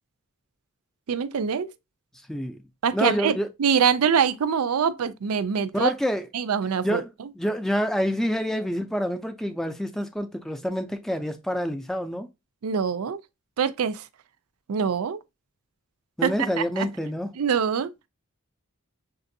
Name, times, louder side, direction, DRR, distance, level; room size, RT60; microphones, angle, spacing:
voice 1, 1.1-1.7 2.8-5.9 6.3-7.0 12.6-13.2 13.6-14.0 14.7-15.2 16.2-16.3 16.6-16.9 17.4-17.9, right 7 dB, 90° right, 0.4 m, -24 dB
voice 2, 2.9-3.5 5.7-6.3 6.8-12.3 16.2-17.3, equal, ahead, 0.4 m, -27 dB
6.5 x 2.6 x 2.6 m
head